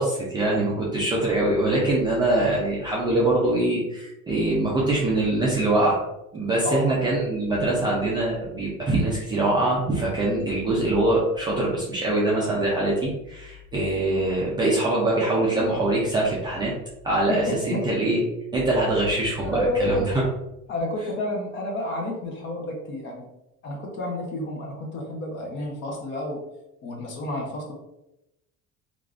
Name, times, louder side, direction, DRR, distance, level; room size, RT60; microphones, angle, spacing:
voice 1, 0.0-6.0 6.3-16.7 17.0-18.2 18.5-20.0, right 2 dB, 15° right, -6 dB, 0.3 m, -23 dB
voice 2, 6.6-7.1 17.3-17.9 19.4-20.1 20.7-23.3 23.6-26.4 26.8-27.7, left 1 dB, 40° left, 0 dB, 0.7 m, -30 dB
3.4 x 2.4 x 2.4 m, 0.90 s
cardioid pair, 170°, 31 cm